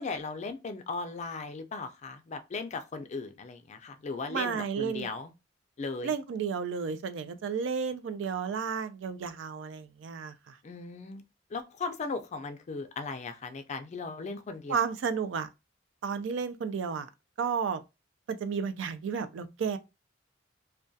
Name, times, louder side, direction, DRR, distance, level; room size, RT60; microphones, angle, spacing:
voice 1, 0.0-5.3 5.8-6.1 10.6-11.2 11.5-14.8, left 4 dB, 35° left, 0.3 m, -37 dB
voice 2, 4.3-5.1 6.0-10.6 14.7-15.5 16.0-17.1 17.4-17.8 18.3-19.8, right 6 dB, 75° right, 0.3 m, -32 dB
2.3 x 2.2 x 2.6 m
head